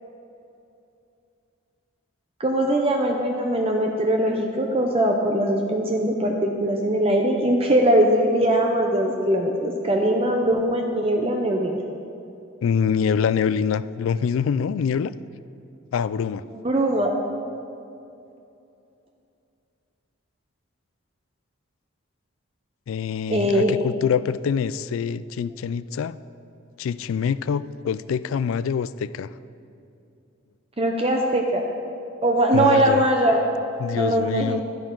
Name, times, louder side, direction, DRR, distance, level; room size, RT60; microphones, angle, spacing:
voice 1, 2.4-11.8 16.5-17.1 23.3-23.7 30.8-31.7 32.2-33.4 34.0-34.6, right 1 dB, 30° right, 2 dB, 0.6 m, -21 dB
voice 2, 12.6-15.1 15.9-16.4 22.9-26.2 26.8-29.3 32.5-33.0 33.8-34.6, left 7 dB, 70° left, 16 dB, 0.3 m, -25 dB
12.5 x 10.5 x 3.8 m, 2.6 s
head